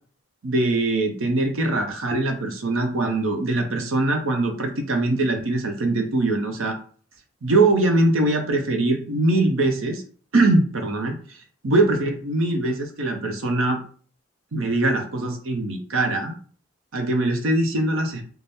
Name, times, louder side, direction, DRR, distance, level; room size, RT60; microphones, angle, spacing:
voice 1, 0.4-6.8 7.4-10.0 10.3-11.4 11.6-13.8 14.5-16.3 16.9-18.2, right 2 dB, 85° right, 4 dB, 0.7 m, -22 dB
4.1 x 2.2 x 3.4 m, 0.43 s
head